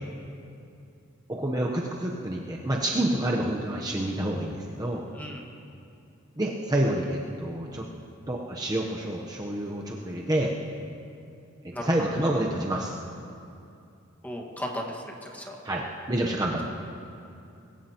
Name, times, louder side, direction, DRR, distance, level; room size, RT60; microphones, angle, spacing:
voice 1, 1.3-5.0 6.4-7.9 8.3-10.6 11.6-13.0 15.6-16.6, right 1 dB, 20° right, -2 dB, 0.9 m, -28 dB
voice 2, 14.2-15.5, equal, 10° left, 0 dB, 1.7 m, -36 dB
21.5 x 17.5 x 3.0 m, 2.6 s
head